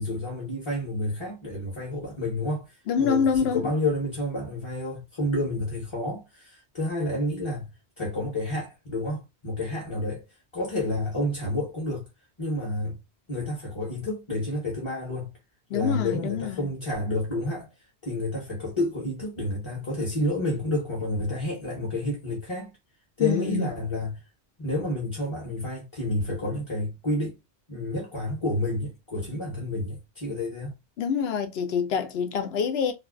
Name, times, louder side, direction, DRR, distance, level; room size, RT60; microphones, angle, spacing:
voice 1, 0.0-2.7 3.0-7.7 8.0-10.3 10.5-12.1 12.4-13.0 13.3-15.3 15.7-17.7 18.0-22.7 23.2-24.2 24.6-27.4 27.7-30.8, left 1 dB, 30° left, 0.9 m, -29 dB
voice 2, 2.9-3.6 15.7-16.7 23.2-23.7 31.0-32.9, left 6 dB, 70° left, 0.8 m, -26 dB
2.5 x 2.3 x 2.2 m
omnidirectional pair, 1.2 m